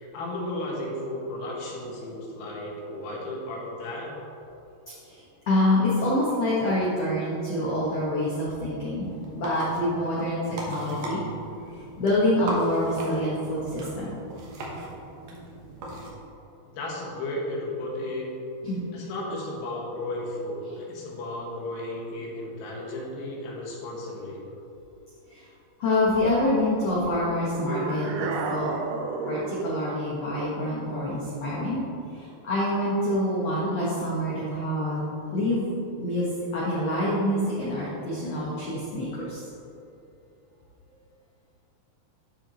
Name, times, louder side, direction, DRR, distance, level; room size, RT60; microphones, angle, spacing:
voice 1, 0.0-4.1 16.6-18.3 18.9-24.4, left 1 dB, 90° left, -3 dB, 3.5 m, -34 dB
voice 2, 5.0-11.2 12.0-14.2 18.7-18.8 25.3-25.4 25.8-28.7 29.3-31.8 32.1-35.7 36.0-36.3 36.5-39.4, left 1 dB, 70° left, -7 dB, 1.5 m, -26 dB
sound 1, 9.0-16.1, right 1 dB, 65° right, 1.9 m, -38 dB
sound 2, 27.5-29.8, right 4 dB, 85° right, 1.9 m, -31 dB
11.5 x 4.7 x 3.9 m, 2.8 s
omnidirectional pair, 4.6 m